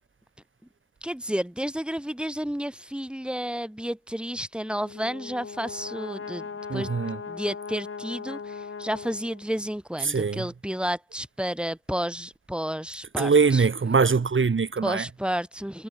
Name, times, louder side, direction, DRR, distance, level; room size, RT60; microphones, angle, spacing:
voice 1, 1.0-6.9 7.3-13.7 14.8-15.9, equal, 5° right, 4.9 m, -31 dB
Brass instrument, 4.6-9.7, left 5 dB, 85° left, 7.7 m, -39 dB
voice 2, 6.7-7.2 10.0-10.4 13.2-15.0, right 5 dB, 70° right, 3.5 m, -22 dB
wide cardioid pair, 85°, 21 cm